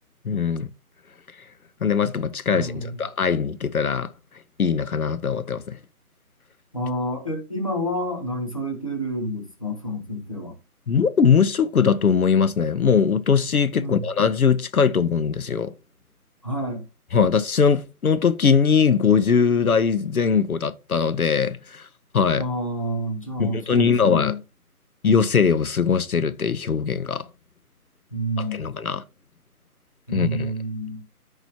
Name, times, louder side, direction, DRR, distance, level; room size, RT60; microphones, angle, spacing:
voice 1, 0.2-0.7 1.8-4.1 4.6-5.8 10.9-15.7 17.1-21.9 22.1-22.5 23.4-24.4 25.0-27.3 28.4-29.0 30.1-30.5, left 6 dB, 65° left, 0.8 m, -21 dB
voice 2, 2.5-3.0 6.7-10.6 13.8-14.0 16.4-16.8 22.4-24.4 28.1-28.7 30.1-31.0, equal, 20° left, 0.8 m, -29 dB
13.5 x 4.9 x 2.8 m
figure-of-eight pair, 170°, 46 cm